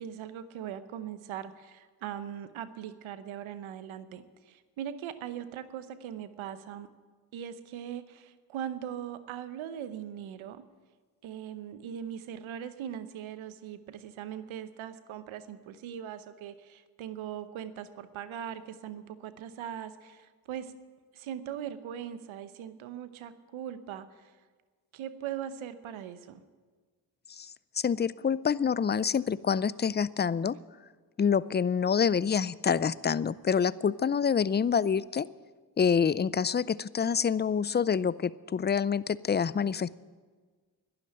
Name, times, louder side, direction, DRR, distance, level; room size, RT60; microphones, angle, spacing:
voice 1, 0.0-6.9 7.3-10.6 11.2-20.7 21.1-24.3 24.9-26.4, right 9 dB, 85° right, 12 dB, 0.9 m, -40 dB
voice 2, 27.8-30.6 31.2-35.3 35.8-40.0, left 7 dB, 25° left, 20 dB, 0.4 m, -27 dB
12.0 x 10.5 x 8.9 m, 1.5 s
supercardioid pair, 45°, 47 cm